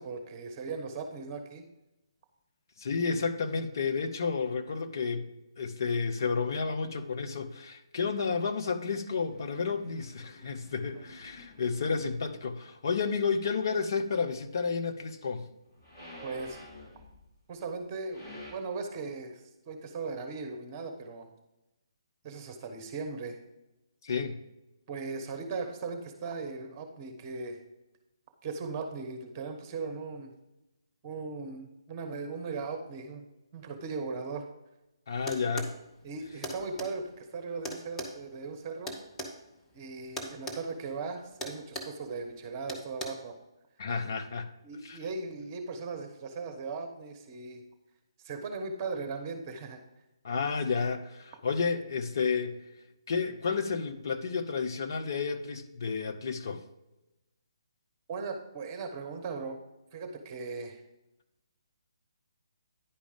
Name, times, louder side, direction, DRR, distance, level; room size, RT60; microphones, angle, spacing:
voice 1, 0.0-1.6 16.2-16.6 17.5-21.3 22.2-23.4 24.9-27.6 28.4-30.3 31.0-33.2 33.5-34.5 36.0-39.0 39.7-43.3 44.6-47.6 48.2-49.8 58.1-59.6 59.9-60.8, right 4 dB, 25° right, 1.1 m, -38 dB
voice 2, 2.8-15.5 24.0-24.4 35.1-35.7 43.8-44.5 44.8-45.0 50.2-52.6 53.1-56.6, left 5 dB, 50° left, 0.8 m, -31 dB
sound 1, 9.3-12.3 15.5-17.4 17.8-18.5, left 1 dB, 25° left, 2.5 m, -49 dB
sound 2, 35.3-35.8 36.4-36.9 37.6-39.3 40.2-40.6 40.9-41.1 41.4-42.0 42.7-43.1, equal, 10° left, 1.2 m, -37 dB
10.0 x 5.1 x 5.1 m
figure-of-eight pair, 140°, 3 cm